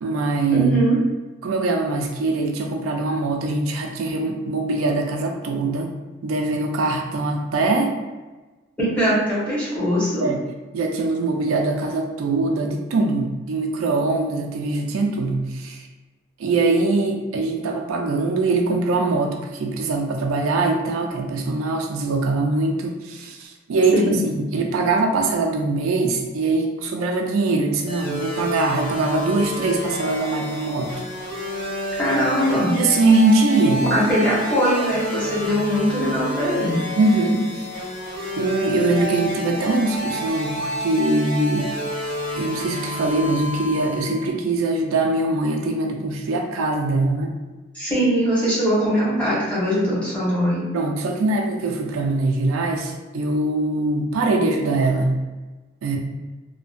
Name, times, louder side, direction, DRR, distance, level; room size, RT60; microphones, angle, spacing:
voice 1, 0.0-0.9 1.4-5.9 6.2-8.0 10.2-10.4 10.7-15.8 16.4-30.9 32.7-33.9 37.0-37.7 38.4-41.7 42.3-47.4 50.7-55.2 55.8-56.0, right 2 dB, 90° right, 2 dB, 0.4 m, -22 dB
voice 2, 0.5-1.0 8.8-10.3 23.9-24.2 32.0-32.8 33.9-36.8 47.7-50.7, equal, 5° left, -9 dB, 0.9 m, -21 dB
sound 1, 27.9-44.3, left 1 dB, 30° left, 1.4 m, -29 dB
2.6 x 2.1 x 2.4 m, 1.2 s
head